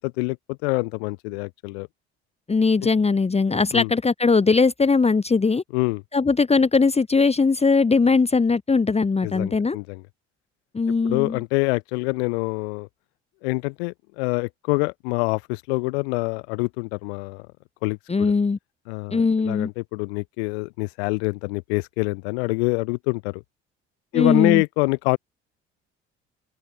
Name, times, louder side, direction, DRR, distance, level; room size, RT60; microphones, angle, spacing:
voice 1, 0.0-1.9 3.7-3.9 5.7-6.0 9.2-10.0 11.0-12.9 13.4-17.5 17.8-18.3 18.9-23.4 24.1-25.2, left 28 dB, 70° left, 6.1 m, -25 dB
voice 2, 2.5-5.6 6.1-9.8 10.7-11.4 18.1-18.6 19.1-19.7 24.1-24.6, left 4 dB, 20° left, 1.3 m, -20 dB
open air
figure-of-eight pair, 55°, 33 cm